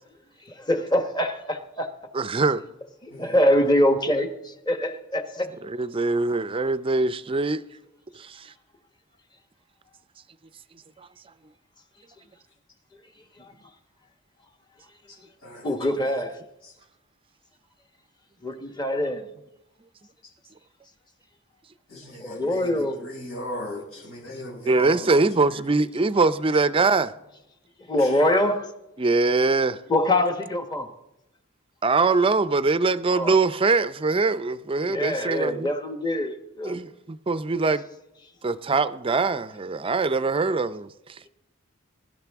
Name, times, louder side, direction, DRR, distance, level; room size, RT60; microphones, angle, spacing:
voice 1, 0.6-1.9 3.2-4.3 4.7-5.5 15.6-16.4 18.4-19.3 22.2-23.0 27.9-28.7 29.9-30.9 33.1-33.3 34.9-36.8, left 1 dB, 20° left, 1.1 m, -24 dB
voice 2, 2.1-2.6 5.6-7.6 8.2-8.5 11.0-11.1 24.7-27.1 29.0-29.8 31.8-35.7 36.6-37.8 38.4-40.9, right 3 dB, 25° right, 0.4 m, -23 dB
voice 3, 15.1-15.8 16.0-16.1 16.6-16.7 21.9-25.6 28.0-28.2, left 1 dB, 80° left, 5.8 m, -38 dB
22.0 x 12.0 x 3.5 m
head